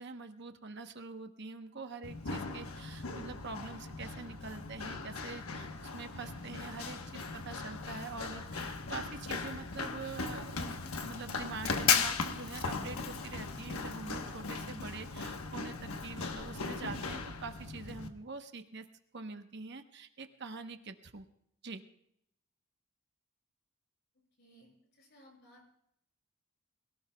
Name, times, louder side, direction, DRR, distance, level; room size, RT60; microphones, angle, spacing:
voice 1, 0.0-18.9 19.1-21.3 21.6-21.8, right 4 dB, 55° right, 7 dB, 0.9 m, -45 dB
Run, 2.0-18.1, left 5 dB, 85° left, 1.1 m, -37 dB
voice 2, 24.4-25.7, equal, 55° left, 1 dB, 5.5 m, -60 dB
22.0 x 17.5 x 2.3 m, 0.74 s
head